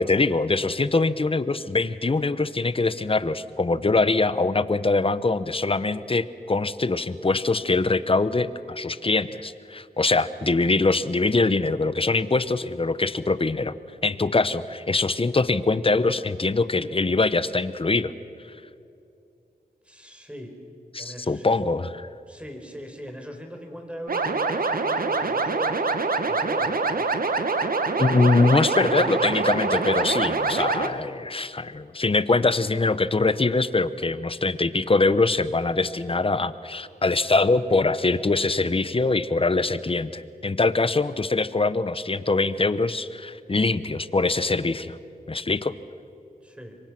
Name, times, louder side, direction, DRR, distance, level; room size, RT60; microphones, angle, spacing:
voice 1, 0.0-13.7 14.0-18.1 20.9-22.1 28.0-45.0 45.3-45.7, left 3 dB, 35° left, 15 dB, 1.0 m, -23 dB
voice 2, 19.8-20.5 21.0-21.6 22.3-25.8 26.3-27.1 46.4-46.8, equal, 5° right, 4 dB, 4.3 m, -40 dB
sound 1, 24.1-30.9, right 3 dB, 70° right, 1.5 m, -25 dB
27.0 x 23.0 x 6.1 m, 2.7 s
wide cardioid pair, 65°, 16 cm